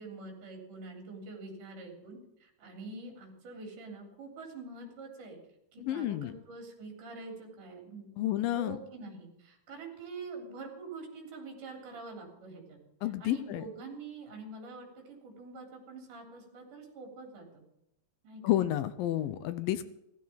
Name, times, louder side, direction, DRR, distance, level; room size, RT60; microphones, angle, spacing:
voice 1, 0.0-5.4 5.7-12.8 13.2-17.6 18.2-18.6, right 3 dB, 55° right, 2 dB, 4.8 m, -45 dB
voice 2, 5.8-6.3 8.2-8.8 13.0-13.6 18.4-19.9, left 13 dB, 75° left, 12 dB, 2.4 m, -30 dB
15.5 x 14.0 x 5.8 m, 0.81 s
omnidirectional pair, 4.5 m